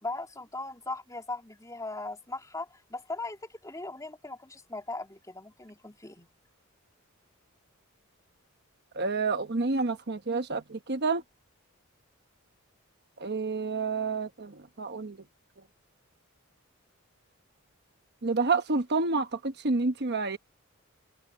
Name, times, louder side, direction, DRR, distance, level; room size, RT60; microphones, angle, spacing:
voice 1, 0.0-6.3, left 2 dB, 15° left, 3.2 m, -39 dB
voice 2, 9.0-11.2 13.2-14.5 14.8-15.2 18.2-20.4, right 3 dB, 50° right, 1.1 m, -29 dB
head